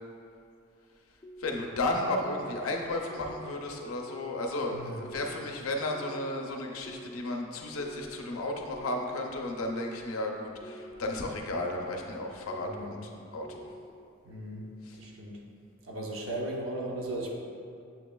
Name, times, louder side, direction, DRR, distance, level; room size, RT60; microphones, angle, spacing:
sound 1, 1.2-1.7 2.2-2.7 3.1-3.6 4.0-4.5 5.0-5.5 5.9-6.4 6.9-7.3 7.8-8.3 8.7-9.2 9.7-10.2 10.6-11.1 11.5-12.0 12.5-13.0 13.4-13.9, equal, 25° left, 0.4 m, -47 dB
voice 1, 1.4-13.6 14.9-15.0, left 2 dB, 80° left, 1 dB, 0.5 m, -33 dB
voice 2, 4.7-5.0 12.6-13.0 14.2-14.6 14.9-15.4 15.8-17.4, right 1 dB, 70° right, -1 dB, 0.7 m, -37 dB
7.2 x 3.0 x 2.2 m, 2.4 s
head